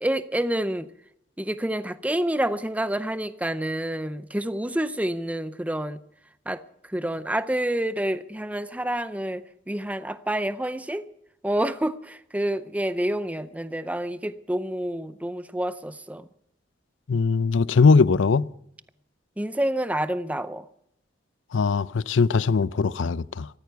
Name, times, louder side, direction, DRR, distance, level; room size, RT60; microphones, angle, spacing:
voice 1, 0.0-0.9 1.4-6.0 6.5-11.0 11.4-16.3 19.4-20.6, right 1 dB, 5° right, 0.5 m, -28 dB
voice 2, 17.1-18.5 21.5-23.5, left 4 dB, 75° left, 0.5 m, -20 dB
14.0 x 14.0 x 6.9 m
head